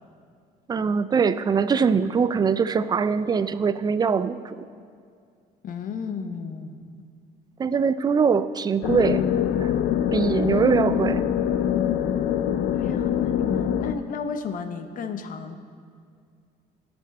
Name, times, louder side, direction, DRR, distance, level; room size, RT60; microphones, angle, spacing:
voice 1, 0.7-4.6 7.6-9.2 9.6-9.7 10.1-11.2, right 6 dB, 25° right, 13 dB, 0.4 m, -22 dB
voice 2, 5.6-6.9 12.7-15.6, left 5 dB, 55° left, 8 dB, 0.9 m, -33 dB
sound 1, 8.8-13.9, left 9 dB, 70° left, 0.5 m, -24 dB
17.5 x 6.2 x 4.2 m, 2.2 s
cardioid pair, 110°, 17 cm